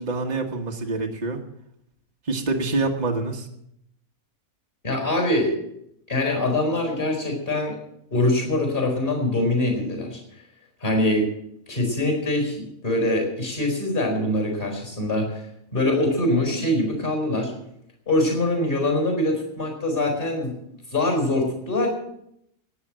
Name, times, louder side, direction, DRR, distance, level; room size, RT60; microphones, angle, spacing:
voice 1, 0.0-1.4 2.2-3.5, right 3 dB, 30° right, 1 dB, 1.5 m, -26 dB
voice 2, 4.8-5.6 6.1-7.7 8.1-10.2 10.8-11.3 11.7-15.4 15.7-17.5 18.1-20.6 20.9-21.9, left 1 dB, 35° left, 3 dB, 4.9 m, -23 dB
14.0 x 9.8 x 7.6 m, 0.76 s
omnidirectional pair, 1.6 m